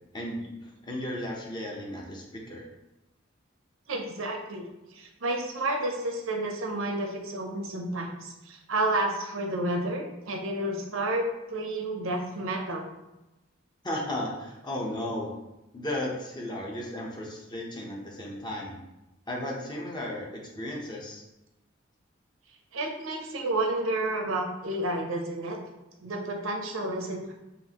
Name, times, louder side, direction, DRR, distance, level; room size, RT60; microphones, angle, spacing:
voice 1, 0.1-2.6 13.8-15.3 15.7-18.8 19.3-21.2, left 1 dB, 20° left, -2 dB, 0.7 m, -35 dB
voice 2, 3.9-4.6 4.9-12.9 22.7-25.6 26.0-27.3, right 2 dB, 85° right, 2 dB, 0.6 m, -30 dB
5.2 x 2.5 x 2.8 m, 0.97 s
head